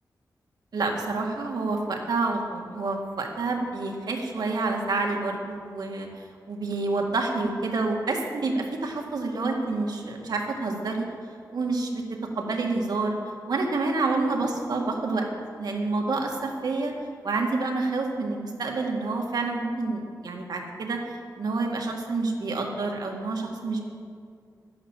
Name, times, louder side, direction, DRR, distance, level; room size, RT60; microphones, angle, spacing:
voice 1, 0.7-6.1 6.5-11.1 11.5-12.0 12.4-13.2 13.5-15.2 15.6-16.9 17.2-21.0 21.4-23.9, right 3 dB, 80° right, 1 dB, 1.9 m, -28 dB
11.5 x 11.0 x 7.4 m, 2.3 s
wide cardioid pair, 125°, 7 cm